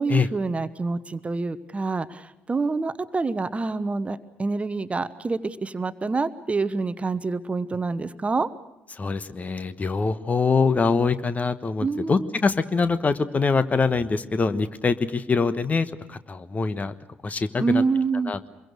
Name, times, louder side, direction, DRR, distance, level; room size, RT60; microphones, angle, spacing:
voice 1, 0.0-8.5 11.8-12.3 17.6-18.3, right 4 dB, 25° right, 13 dB, 1.0 m, -27 dB
voice 2, 9.0-16.9 17.2-17.8 18.3-18.4, left 4 dB, 30° left, 12 dB, 1.3 m, -24 dB
26.0 x 22.5 x 6.5 m, 0.88 s
figure-of-eight pair, 45°, 5 cm